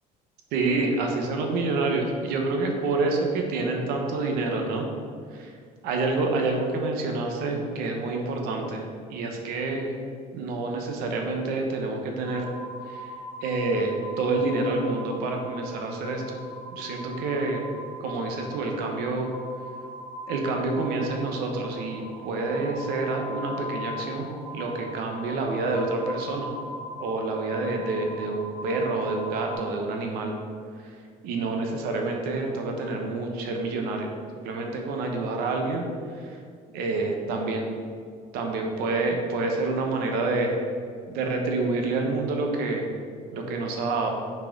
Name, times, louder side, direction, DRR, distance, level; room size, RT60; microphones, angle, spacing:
voice 1, 0.5-4.9 5.3-5.5 5.8-8.8 9.1-9.9 10.3-12.4 12.9-13.1 13.4-16.4 16.7-17.6 18.0-19.3 20.3-24.3 24.5-26.5 27.0-30.3 31.2-34.1 34.4-35.9 36.2-36.4 36.7-37.7 38.3-40.6 41.1-42.9 43.3-44.1, right 3 dB, 70° right, 2 dB, 1.1 m, -28 dB
sound 1, 12.2-29.5, left 1 dB, 55° right, 1.6 m, -40 dB
6.0 x 4.7 x 5.2 m, 2.1 s
cardioid pair, 140°, 16 cm